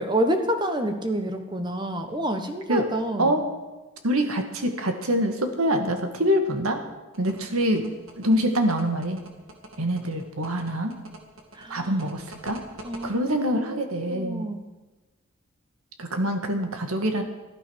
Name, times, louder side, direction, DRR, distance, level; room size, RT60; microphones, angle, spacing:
voice 1, 0.0-3.4 11.5-11.9 12.8-13.8 14.1-14.6, right 1 dB, 20° right, 6 dB, 1.3 m, -28 dB
voice 2, 4.0-6.8 7.2-7.9 8.2-9.2 9.8-11.0 11.7-12.6 13.0-14.5 16.0-17.2, equal, 85° right, 6 dB, 2.0 m, -25 dB
sound 1, 7.1-13.1, right 1 dB, 65° right, 2.1 m, -44 dB
14.0 x 12.5 x 6.5 m, 1.2 s
head